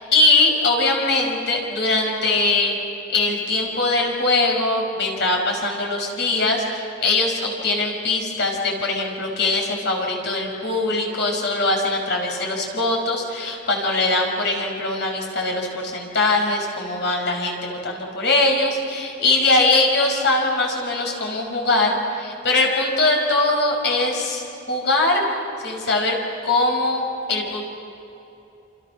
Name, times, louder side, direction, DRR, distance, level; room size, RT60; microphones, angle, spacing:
voice 1, 0.0-2.8 3.1-25.3 25.6-27.6, left 2 dB, 55° left, 1 dB, 5.3 m, -21 dB
28.0 x 27.5 x 6.2 m, 3.0 s
head